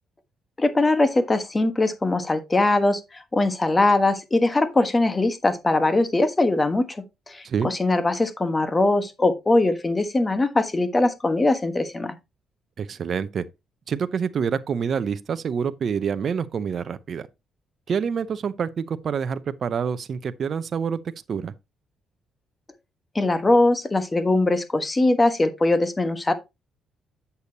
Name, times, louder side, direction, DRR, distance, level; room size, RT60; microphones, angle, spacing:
voice 1, 0.6-7.0 7.3-12.1 23.1-26.3, left 2 dB, 20° left, 1.3 m, -21 dB
voice 2, 12.8-13.4 13.9-17.3 17.9-21.0 21.3-21.5, right 6 dB, 55° right, 0.6 m, -27 dB
8.1 x 6.9 x 2.8 m
cardioid pair, 90°, 0 cm